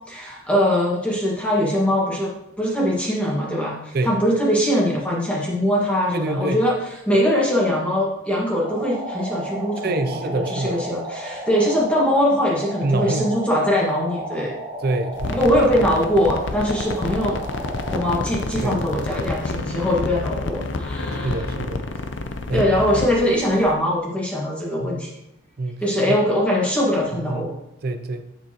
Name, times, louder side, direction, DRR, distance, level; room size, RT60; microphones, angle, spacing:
voice 1, 0.1-2.3 2.6-6.8 7.1-14.5 15.3-17.4 17.9-21.4 22.5-25.1 25.8-27.5, equal, 5° left, -4 dB, 1.6 m, -22 dB
voice 2, 6.1-6.6 9.8-10.8 12.8-13.3 14.8-15.5 18.6-18.8 21.2-21.8 22.5-22.7 24.8-25.0 25.6-25.8 26.1-26.2 27.1-27.5 27.8-28.2, right 2 dB, 50° right, 8 dB, 0.5 m, -26 dB
sound 1, 8.6-18.2, right 1 dB, 30° right, 1.3 m, -33 dB
sound 2, 15.1-23.7, left 3 dB, 60° left, 0.6 m, -29 dB
7.4 x 6.6 x 3.0 m, 0.86 s
head